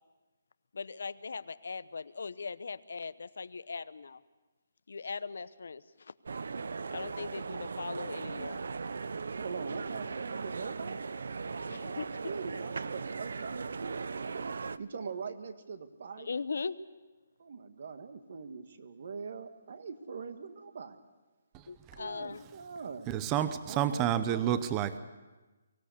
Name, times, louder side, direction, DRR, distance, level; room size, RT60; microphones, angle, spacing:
voice 1, 0.7-4.2 4.9-6.1 6.9-8.6 11.7-12.1 16.2-16.8 21.7-22.4, left 4 dB, 75° left, 15 dB, 0.8 m, -39 dB
sound 1, 6.3-14.8, right 4 dB, 75° right, 0.7 m, -38 dB
voice 2, 9.4-11.1 11.8-14.4 14.8-16.3 17.4-21.0 22.0-23.1 23.7-24.6, right 5 dB, 55° right, 9 dB, 1.7 m, -42 dB
voice 3, 23.1-25.0, right 10 dB, 15° right, 13 dB, 0.7 m, -29 dB
23.5 x 16.5 x 8.2 m, 1.2 s
hypercardioid pair, 170°, 0 cm